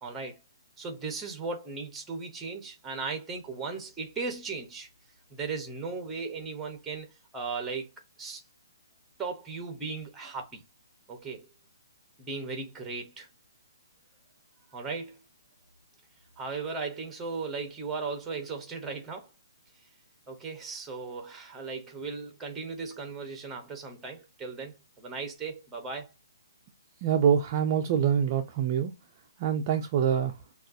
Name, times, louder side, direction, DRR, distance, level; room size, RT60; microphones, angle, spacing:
voice 1, 0.0-0.4 0.8-4.9 5.3-7.9 8.2-8.4 9.2-10.6 11.1-11.5 12.2-13.3 14.7-15.2 16.4-19.3 20.3-26.1, right 4 dB, 5° right, 0.8 m, -37 dB
voice 2, 27.0-28.9 29.4-30.4, right 8 dB, 25° right, 0.4 m, -25 dB
6.3 x 2.4 x 2.6 m
hypercardioid pair, 170°, 2 cm